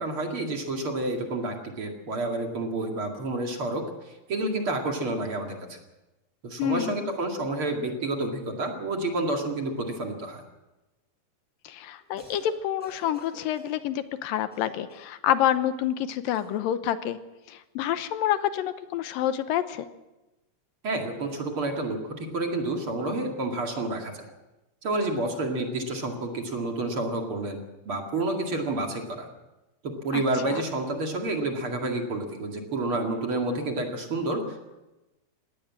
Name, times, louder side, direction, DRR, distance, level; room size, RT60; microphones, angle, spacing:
voice 1, 0.0-3.8 4.3-5.8 6.4-10.4 20.8-24.3 24.8-27.6 27.8-29.3 29.8-34.6, right 2 dB, 40° right, 2 dB, 2.8 m, -29 dB
voice 2, 6.6-7.1 11.6-17.2 17.5-19.9 30.1-30.6, left 11 dB, 85° left, 11 dB, 2.7 m, -28 dB
Cough, 12.0-12.5 12.8-13.8 14.5-15.2 16.3-16.7, left 1 dB, ahead, 7.3 m, -50 dB
20.5 x 17.5 x 7.5 m, 1.0 s
omnidirectional pair, 4.0 m